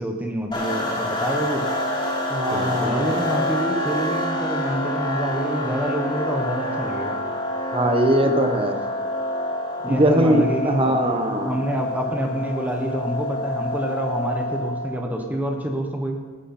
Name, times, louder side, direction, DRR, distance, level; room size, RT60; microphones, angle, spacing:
voice 1, 0.0-1.7 2.5-7.2 9.8-16.2, right 1 dB, 10° right, 3 dB, 1.3 m, -27 dB
sound 1, 0.5-15.1, left 1 dB, 25° left, 2.3 m, -27 dB
voice 2, 2.3-3.3 7.7-8.8 9.9-11.5, right 1 dB, 25° right, 5 dB, 1.3 m, -21 dB
15.0 x 11.5 x 4.4 m, 1.3 s
head